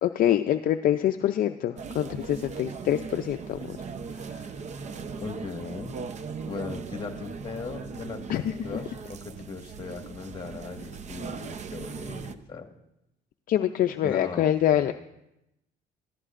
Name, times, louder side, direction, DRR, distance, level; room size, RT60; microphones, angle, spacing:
voice 1, 0.0-3.8 4.1-4.5 8.3-8.5 13.5-14.9, left 11 dB, 55° left, 7 dB, 0.5 m, -25 dB
sound 1, 1.8-12.3, right 5 dB, 45° right, 0.7 m, -39 dB
voice 2, 5.2-5.9 6.5-12.7 14.0-14.9, left 4 dB, 30° left, 4 dB, 1.7 m, -38 dB
20.0 x 14.0 x 2.5 m, 0.88 s
cardioid pair, 110°, 17 cm